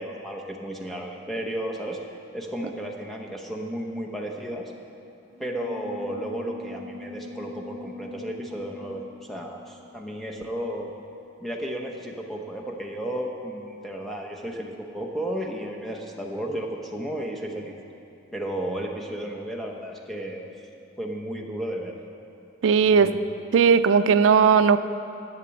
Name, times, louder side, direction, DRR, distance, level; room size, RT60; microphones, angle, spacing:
voice 1, 0.0-2.0 2.3-4.7 5.4-10.9 11.4-17.7 18.3-20.5 21.0-22.0 22.8-23.2, right 1 dB, ahead, 0 dB, 0.9 m, -33 dB
sound 1, 5.3-11.3, left 2 dB, 35° right, 0.7 m, -43 dB
voice 2, 22.6-23.1 23.5-24.8, right 6 dB, 85° right, 11 dB, 0.4 m, -17 dB
11.5 x 7.6 x 7.0 m, 2.8 s
head